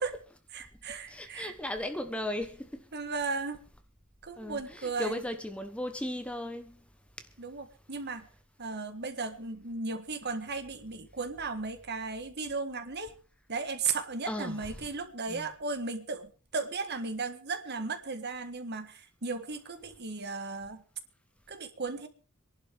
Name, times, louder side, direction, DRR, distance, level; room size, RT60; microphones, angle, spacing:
voice 1, 0.5-1.5 2.9-3.6 4.2-5.2 7.4-8.3 8.6-13.1 13.5-20.8 21.5-22.1, right 4 dB, 50° right, 1.6 m, -35 dB
voice 2, 1.1-2.8 4.4-6.8 14.3-14.7 15.3-15.5, left 1 dB, 5° left, 1.1 m, -36 dB
25.5 x 11.5 x 3.5 m
head